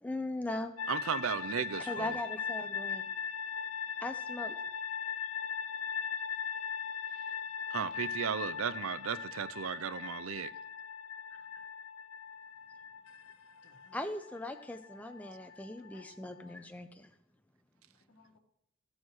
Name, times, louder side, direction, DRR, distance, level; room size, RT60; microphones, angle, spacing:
voice 1, 0.0-0.7 1.9-3.0 4.0-4.6 11.3-11.7 13.9-17.1, left 2 dB, 5° left, 0.4 m, -39 dB
sound 1, 0.8-16.5, left 7 dB, 75° left, 0.4 m, -40 dB
voice 2, 0.9-2.2 7.7-10.5, right 7 dB, 80° right, 0.5 m, -35 dB
voice 3, 13.6-14.0 15.8-16.6 18.1-18.4, left 2 dB, 60° left, 1.4 m, -61 dB
15.0 x 6.4 x 4.7 m
head